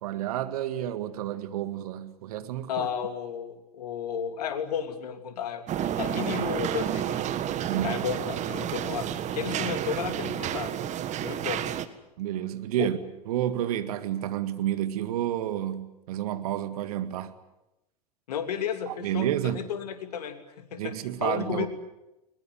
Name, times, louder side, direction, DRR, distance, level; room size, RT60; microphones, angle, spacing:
voice 1, 0.0-2.9 7.7-8.0 12.2-13.0 13.3-17.3 18.9-19.7 20.8-21.7, right 12 dB, 65° right, 2.0 m, -30 dB
voice 2, 2.7-7.3 7.8-9.1 9.3-10.8 11.2-11.6 12.8-12.9 18.3-20.9 21.2-21.7, left 8 dB, 75° left, 3.0 m, -33 dB
sound 1, 5.7-11.8, right 10 dB, 35° right, 1.7 m, -30 dB
21.5 x 21.0 x 9.7 m
hypercardioid pair, 90°, 20 cm